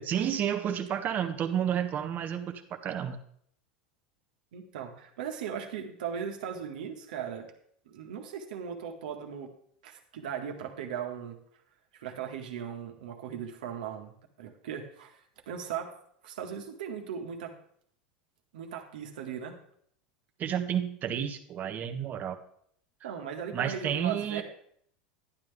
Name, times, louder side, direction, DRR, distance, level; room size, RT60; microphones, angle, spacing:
voice 1, 0.0-3.2 20.4-22.4 23.5-24.4, right 9 dB, 40° right, 7 dB, 1.3 m, -31 dB
voice 2, 4.5-7.5 7.9-9.5 9.8-11.4 11.9-15.9 16.2-17.5 18.5-19.6 23.0-24.4, right 8 dB, 75° right, 3 dB, 1.8 m, -38 dB
11.5 x 10.5 x 3.5 m, 0.65 s
hypercardioid pair, 90°, 5 cm